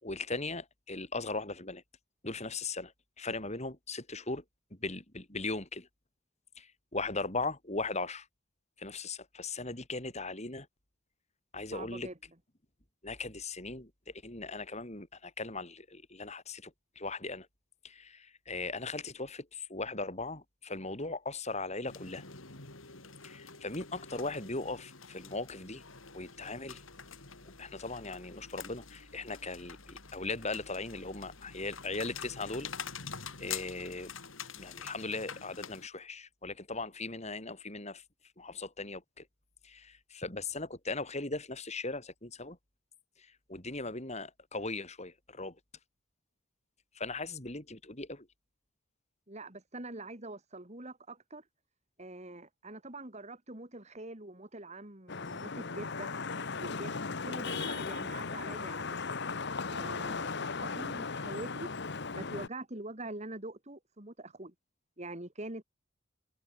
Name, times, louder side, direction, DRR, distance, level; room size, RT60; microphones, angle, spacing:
voice 1, 0.0-1.8 2.2-4.4 4.7-5.9 6.6-8.3 8.8-10.7 11.5-12.1 13.0-17.5 17.8-22.2 23.2-25.8 26.1-26.8 27.6-32.7 33.4-34.1 34.6-38.0 38.4-39.2 39.6-42.6 43.2-45.6 46.9-48.3 60.0-60.2, left 3 dB, 35° left, 5.2 m, -38 dB
voice 2, 11.7-12.2 49.3-51.4 52.0-56.1 56.6-58.8 59.7-61.7 62.1-64.5 65.0-65.6, right 2 dB, 35° right, 3.2 m, -44 dB
sound 1, 21.9-35.9, left 7 dB, 75° left, 4.5 m, -46 dB
Vehicle horn car horn honking / Traffic noise roadway noise, 55.1-62.5, left 4 dB, 55° left, 1.3 m, -37 dB
head